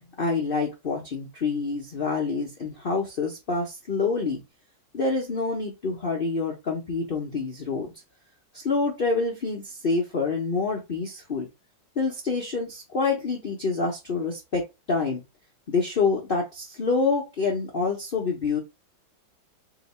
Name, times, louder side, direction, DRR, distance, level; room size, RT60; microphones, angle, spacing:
voice 1, 0.2-4.4 4.9-7.9 8.5-11.5 12.0-15.2 15.7-18.6, left 4 dB, 90° left, 0.4 m, -27 dB
2.9 x 2.8 x 4.1 m
omnidirectional pair, 2.1 m